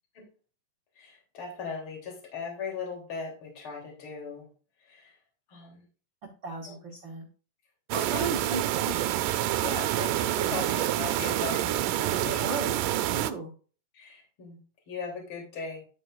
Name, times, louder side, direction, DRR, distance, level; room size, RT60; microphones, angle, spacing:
voice 1, 1.0-4.5 4.9-5.1 5.5-5.8 7.9-8.3 9.6-12.5 13.9-14.6 14.9-15.8, left 5 dB, 40° left, -1 dB, 3.8 m, -38 dB
voice 2, 6.2-7.3 7.9-9.0 12.1-13.5, right 4 dB, 55° right, -1 dB, 1.4 m, -36 dB
sound 1, 7.9-13.3, right 13 dB, 85° right, 2.3 m, -27 dB
11.0 x 8.0 x 2.5 m, 0.38 s
omnidirectional pair, 3.8 m